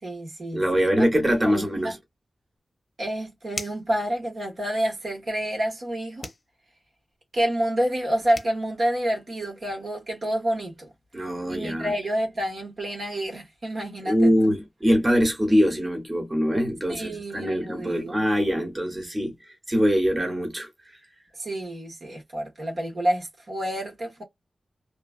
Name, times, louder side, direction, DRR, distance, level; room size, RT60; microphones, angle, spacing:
voice 1, 0.0-1.2 1.4-1.9 3.0-6.3 7.3-10.9 11.5-14.3 16.9-18.2 21.4-24.2, right 1 dB, 60° right, 1.5 m, -28 dB
voice 2, 0.5-1.9 11.1-11.9 14.0-19.3 19.7-20.7, equal, 25° right, 1.3 m, -23 dB
sound 1, 3.5-3.9 6.2-6.5 8.0-8.1 8.3-8.6, left 3 dB, 50° left, 0.7 m, -36 dB
3.0 x 2.3 x 2.4 m
wide cardioid pair, 70°, 0 cm